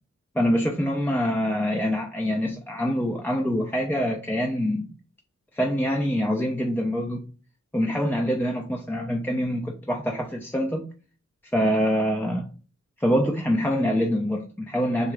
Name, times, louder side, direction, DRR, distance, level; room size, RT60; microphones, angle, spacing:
voice 1, 0.3-4.9 5.5-7.2 7.7-10.8 11.5-12.5 13.0-15.1, equal, 5° left, 0.5 m, -25 dB
3.6 x 2.4 x 3.2 m
wide cardioid pair, 85°, 29 cm